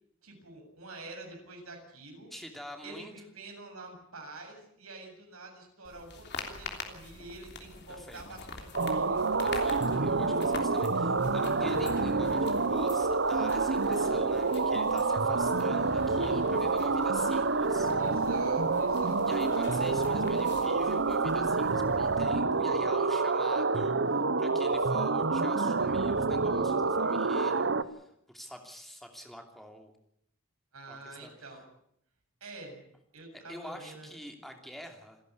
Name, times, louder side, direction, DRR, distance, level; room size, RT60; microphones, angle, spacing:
voice 1, 0.2-2.3 2.8-9.2 18.0-19.8 30.7-31.6 32.4-32.9 33.1-34.4, right 2 dB, 85° right, 2 dB, 7.4 m, -47 dB
voice 2, 2.3-3.1 7.9-8.2 9.4-17.9 19.2-30.0 30.9-31.3 33.5-35.2, equal, ahead, 3 dB, 2.8 m, -46 dB
sound 1, 5.8-22.2, left 4 dB, 50° left, 3.2 m, -46 dB
sound 2, 8.7-27.8, right 3 dB, 55° right, 0.9 m, -28 dB
27.5 x 11.0 x 9.7 m, 0.75 s
head